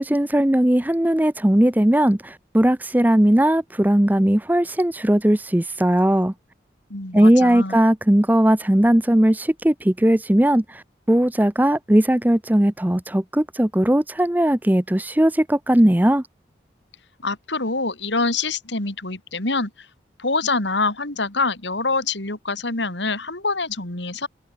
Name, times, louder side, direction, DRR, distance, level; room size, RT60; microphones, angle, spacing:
voice 1, 0.0-6.3 7.1-10.8 11.1-16.2, right 1 dB, 10° right, 0.6 m, -18 dB
voice 2, 6.9-7.8 17.2-19.7 20.2-24.3, left 3 dB, 75° left, 3.8 m, -25 dB
head